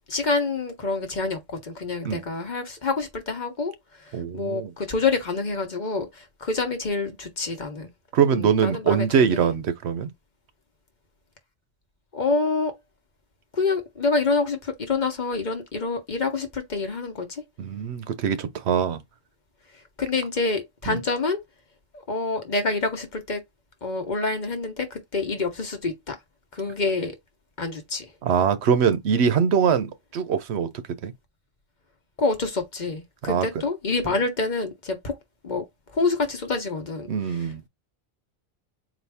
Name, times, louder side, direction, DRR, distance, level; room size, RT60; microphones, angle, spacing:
voice 1, 0.1-3.7 4.0-7.9 8.3-9.5 12.1-12.8 13.5-17.4 20.0-21.4 22.1-23.4 23.8-26.2 26.5-27.2 27.6-28.1 32.2-35.2 35.4-35.6 35.9-37.1, left 3 dB, 45° left, 1.0 m, -27 dB
voice 2, 4.1-4.7 8.1-10.1 17.6-19.0 20.9-21.0 28.2-30.7 31.0-31.1 33.2-33.6 37.1-37.6, right 7 dB, 80° right, 0.9 m, -23 dB
4.2 x 2.5 x 3.4 m
omnidirectional pair, 1.1 m